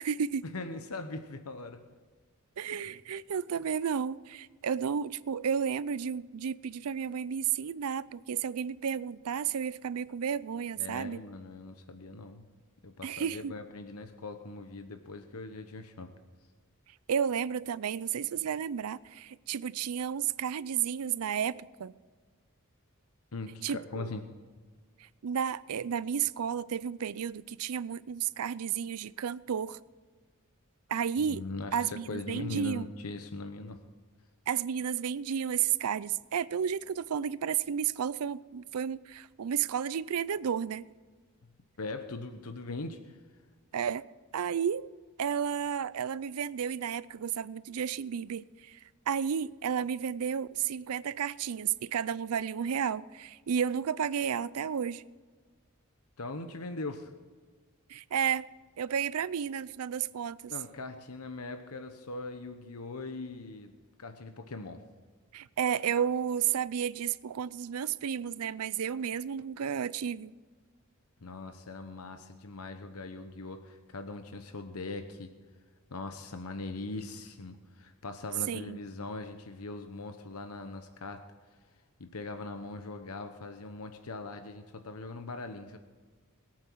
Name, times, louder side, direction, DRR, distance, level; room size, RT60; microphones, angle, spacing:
voice 1, 0.0-0.4 2.6-11.2 13.0-13.5 17.1-21.9 23.6-24.1 25.0-29.8 30.9-31.4 31.7-32.9 34.5-40.8 43.7-44.0 44.3-44.9 45.2-48.8 49.1-55.0 57.9-58.5 58.8-60.5 65.3-70.3 78.5-78.8, right 8 dB, 85° right, 0.5 m, -32 dB
voice 2, 0.5-1.8 10.8-12.5 12.8-16.1 23.3-24.3 31.3-33.8 41.8-43.2 56.2-57.1 60.5-63.7 64.0-64.8 71.2-75.3 75.9-81.3 82.0-85.8, left 2 dB, 85° left, 1.0 m, -41 dB
21.5 x 8.8 x 4.6 m
head